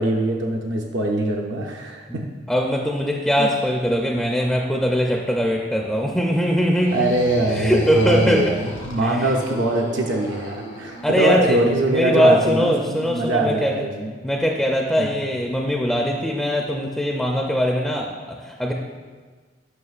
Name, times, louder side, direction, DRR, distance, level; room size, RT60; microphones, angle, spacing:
voice 1, 0.0-2.2 3.4-3.5 6.9-14.1 15.0-15.1, right 1 dB, 75° right, 0 dB, 0.6 m, -22 dB
voice 2, 2.1-7.1 7.5-8.5 9.0-9.2 11.0-13.8 14.2-18.7, equal, ahead, 0 dB, 0.4 m, -21 dB
sound 1, 6.7-11.5, equal, 75° left, 1.6 m, -36 dB
9.5 x 5.7 x 2.4 m, 1.4 s
head